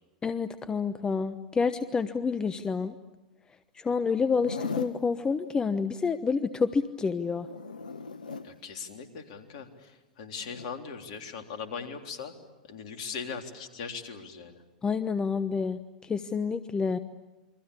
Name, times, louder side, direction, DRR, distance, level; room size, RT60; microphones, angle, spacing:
voice 1, 0.2-2.9 3.8-7.5 14.8-17.0, left 5 dB, 20° left, 11 dB, 1.1 m, -28 dB
Zipper (clothing), 4.3-5.0 7.2-8.5 10.4-10.7, left 5 dB, 85° left, 1.3 m, -37 dB
voice 2, 8.4-12.3 12.6-14.6, left 6 dB, 60° left, 5 dB, 3.6 m, -40 dB
28.5 x 23.5 x 8.6 m, 1.1 s
hypercardioid pair, 95°, 4 cm